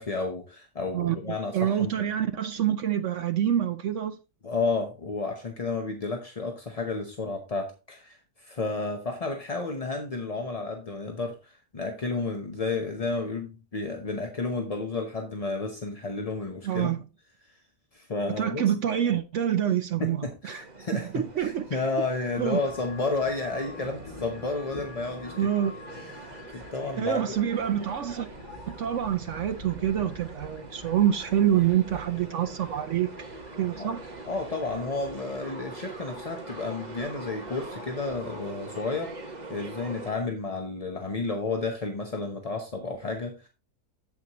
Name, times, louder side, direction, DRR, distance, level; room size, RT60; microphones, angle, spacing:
voice 1, 0.0-1.9 4.4-16.9 17.9-18.6 20.0-25.5 26.0-27.4 33.8-33.9 34.3-43.5, left 3 dB, 30° left, 0.7 m, -32 dB
voice 2, 1.5-4.2 16.6-17.0 18.4-20.6 20.9-21.8 22.4-22.6 25.4-25.8 27.0-28.3 28.7-33.1 33.6-34.0, right 10 dB, 65° right, 0.7 m, -26 dB
sound 1, 20.5-40.1, right 2 dB, 30° right, 1.2 m, -44 dB
sound 2, 22.3-38.4, left 1 dB, 55° left, 2.8 m, -47 dB
8.4 x 7.9 x 2.9 m
omnidirectional pair, 1.8 m